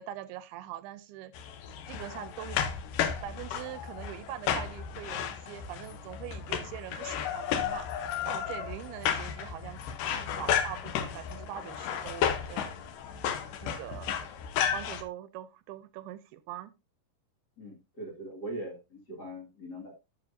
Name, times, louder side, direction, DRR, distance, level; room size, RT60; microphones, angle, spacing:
voice 1, 0.0-1.3 1.9-2.6 3.2-7.9 8.2-12.7 13.6-14.2 14.7-16.7, right 13 dB, 80° right, 2.5 m, -43 dB
sound 1, 1.3-15.0, left 8 dB, 70° left, 2.2 m, -33 dB
voice 2, 17.6-19.9, right 1 dB, 35° left, 1.7 m, -41 dB
12.0 x 7.2 x 2.6 m
omnidirectional pair, 4.7 m